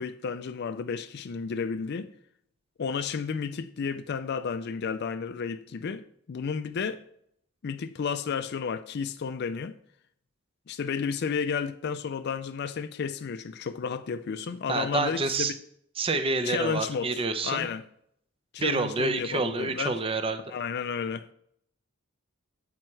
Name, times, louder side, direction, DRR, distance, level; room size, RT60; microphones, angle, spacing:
voice 1, 0.0-2.1 2.8-7.0 7.6-9.8 10.7-15.6 16.4-17.1 17.4-17.8 18.5-20.0 20.5-21.3, left 6 dB, 55° left, 0.4 m, -32 dB
voice 2, 14.7-15.5 16.0-17.7 18.6-20.4, right 3 dB, 25° right, 0.6 m, -28 dB
8.9 x 8.6 x 3.2 m
head